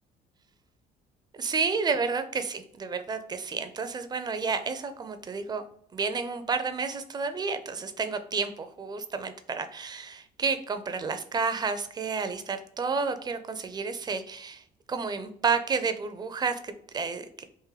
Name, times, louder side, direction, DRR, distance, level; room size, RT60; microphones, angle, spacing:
voice 1, 1.3-5.6 5.9-17.4, right 5 dB, 25° right, 9 dB, 0.4 m, -31 dB
3.7 x 2.6 x 3.1 m, 0.68 s
cardioid pair, 110°, 17 cm